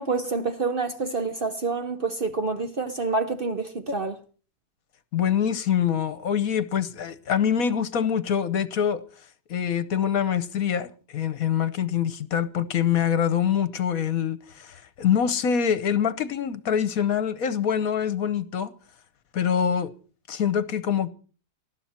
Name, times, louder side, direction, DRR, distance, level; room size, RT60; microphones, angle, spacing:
voice 1, 0.0-4.2, right 3 dB, 40° right, 0.9 m, -27 dB
voice 2, 5.1-9.0 9.5-18.7 19.3-19.9 20.3-21.1, left 8 dB, 65° left, 1.3 m, -25 dB
19.5 x 12.5 x 4.4 m
omnidirectional pair, 1.7 m